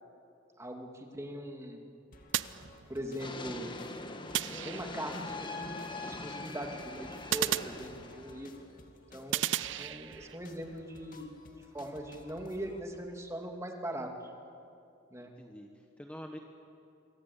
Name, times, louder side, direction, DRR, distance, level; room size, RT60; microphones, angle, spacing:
voice 1, 0.6-1.8 2.9-3.7 4.6-8.5 9.1-14.3 15.1-15.3, right 1 dB, 15° right, 3 dB, 2.3 m, -41 dB
sound 1, 2.1-12.8, left 1 dB, 45° left, 2.5 m, -55 dB
sound 2, 2.3-3.3 4.3-5.2 7.3-8.4 9.3-10.4, right 11 dB, 70° right, 0.6 m, -35 dB
sound 3, 3.2-8.7, left 2 dB, 25° left, 1.5 m, -42 dB
voice 2, 15.2-16.4, equal, 5° left, 2 dB, 1.3 m, -47 dB
27.0 x 24.0 x 8.5 m, 2.6 s
head